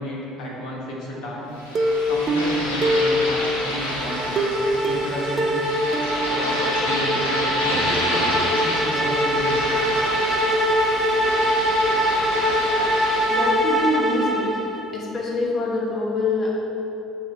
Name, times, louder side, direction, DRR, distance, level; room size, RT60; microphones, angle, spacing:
voice 1, 0.0-1.5 2.1-4.3 4.7-5.6 6.3-9.7, left 1 dB, 50° left, -4 dB, 1.4 m, -32 dB
sound 1, 1.6-13.8, left 1 dB, 75° left, 0.9 m, -29 dB
Plucked string instrument, 1.7-3.7 4.4-7.1 7.5-7.6 7.9-8.0, equal, 40° right, 0.4 m, -24 dB
sound 2, 3.5-14.9, equal, 10° right, 0.7 m, -23 dB
voice 2, 13.3-14.5 14.9-16.6, left 2 dB, 30° left, -4 dB, 1.2 m, -25 dB
7.7 x 2.7 x 4.5 m, 3.0 s
figure-of-eight pair, 55°, 0 cm